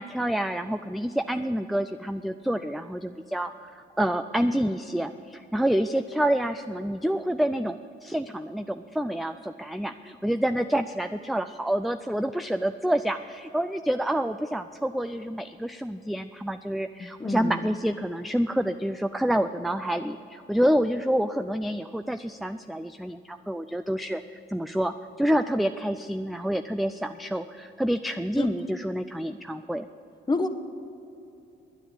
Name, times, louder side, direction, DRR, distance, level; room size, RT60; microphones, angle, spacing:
voice 1, 0.0-29.9, equal, ahead, 9 dB, 0.3 m, -28 dB
voice 2, 17.0-17.7 28.4-28.5 30.3-30.5, left 3 dB, 20° left, 9 dB, 1.0 m, -28 dB
10.0 x 10.0 x 8.8 m, 2.8 s
cardioid pair, 90°, 20 cm